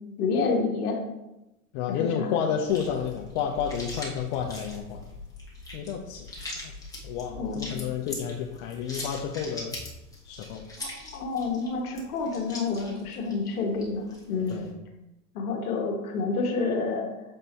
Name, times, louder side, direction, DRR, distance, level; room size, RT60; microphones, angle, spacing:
voice 1, 0.2-1.0 1.9-2.4 7.3-7.7 10.8-14.7 15.3-17.1, left 4 dB, 75° left, 2 dB, 1.4 m, -29 dB
voice 2, 1.7-5.1 5.7-6.3 6.6-6.7 7.0-9.8 10.2-10.6 14.5-14.7, left 8 dB, 50° left, 1 dB, 0.8 m, -30 dB
sound 1, 2.7-14.7, left 2 dB, 10° left, 1.9 m, -41 dB
7.4 x 5.2 x 2.9 m, 0.94 s
hypercardioid pair, 115°, 45 cm